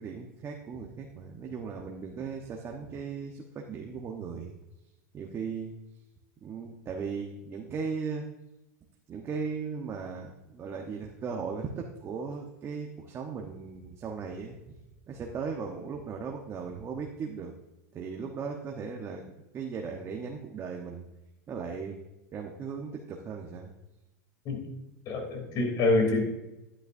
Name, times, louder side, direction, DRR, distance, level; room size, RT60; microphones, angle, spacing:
voice 1, 0.0-4.6 5.1-5.7 6.4-8.3 9.1-14.8 15.1-17.5 17.9-19.2 19.5-21.1 21.5-22.0 22.3-23.7, right 5 dB, 30° right, 1 dB, 1.0 m, -37 dB
voice 2, 25.1-26.2, left 2 dB, 45° left, 3 dB, 3.0 m, -26 dB
10.5 x 9.8 x 2.6 m, 1.0 s
hypercardioid pair, 105°, 9 cm